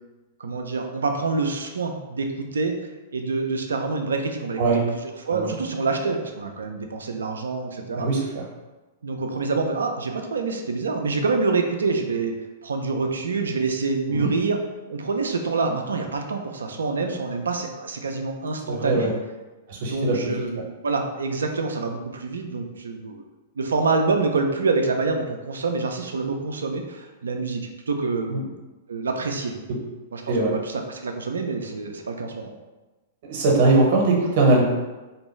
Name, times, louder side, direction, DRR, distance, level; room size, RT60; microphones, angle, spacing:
voice 1, 0.4-2.7 3.1-4.6 4.9-8.1 9.0-12.3 12.6-14.6 14.9-19.1 19.8-23.2 23.6-28.5 28.9-29.5 30.1-32.5, right 4 dB, 75° right, 4 dB, 0.3 m, -26 dB
voice 2, 8.0-8.4 14.1-14.3 18.7-19.1 19.7-20.4 28.3-28.4 30.3-30.5 33.3-34.6, right 2 dB, 50° right, -1 dB, 0.8 m, -21 dB
2.6 x 2.2 x 3.0 m, 1.1 s
figure-of-eight pair, 105°, 0 cm